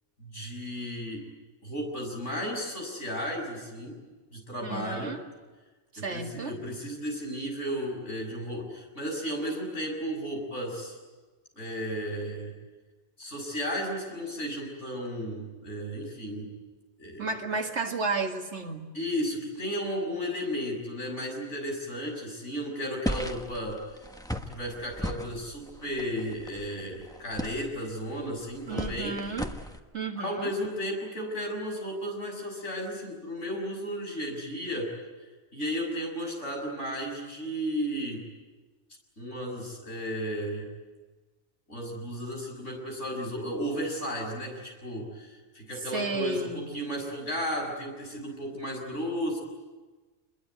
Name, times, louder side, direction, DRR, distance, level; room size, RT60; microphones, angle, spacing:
voice 1, 0.2-1.2 1.6-4.0 4.3-5.1 6.0-11.0 11.6-12.5 13.2-16.5 17.0-17.3 18.9-23.9 24.5-29.2 30.2-34.9 35.5-38.2 39.2-40.7 41.7-49.4, equal, 90° left, 1 dB, 6.9 m, -34 dB
voice 2, 4.6-5.2 5.9-6.6 17.2-18.9 28.7-29.5 29.9-30.5 45.9-46.8, right 3 dB, 75° right, 4 dB, 2.4 m, -32 dB
sound 1, 23.0-29.8, equal, 5° left, 1.3 m, -37 dB
27.0 x 22.0 x 9.5 m, 1.3 s
omnidirectional pair, 1.2 m